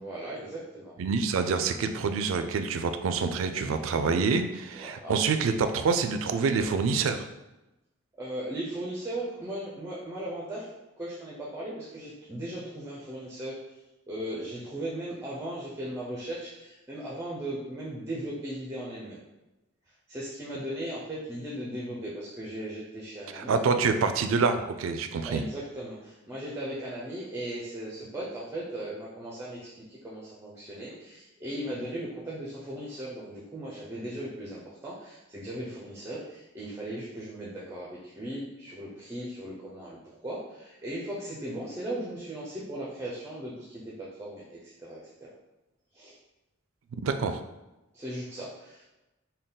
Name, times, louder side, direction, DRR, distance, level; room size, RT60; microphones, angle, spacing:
voice 1, 0.0-1.0 3.5-3.8 4.7-5.2 8.2-10.7 11.0-13.8 14.1-19.2 19.9-23.6 25.2-45.3 45.9-46.2 47.9-48.8, right 1 dB, 15° right, -5 dB, 0.5 m, -37 dB
voice 2, 1.0-7.2 23.3-25.4 47.0-47.4, right 5 dB, 80° right, 8 dB, 0.3 m, -26 dB
3.6 x 2.2 x 3.9 m, 1.0 s
head